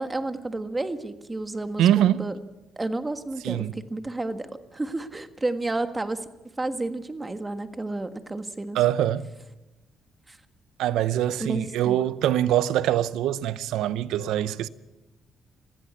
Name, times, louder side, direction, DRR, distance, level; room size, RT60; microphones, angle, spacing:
voice 1, 0.0-2.3 2.8-6.3 6.6-8.8 10.3-10.4 11.4-12.0, right 2 dB, 20° right, 1.6 m, -31 dB
voice 2, 1.8-2.3 3.4-3.8 8.7-9.3 10.8-14.7, right 11 dB, 90° right, 0.7 m, -23 dB
20.5 x 15.5 x 8.6 m
cardioid pair, 90°, 0 cm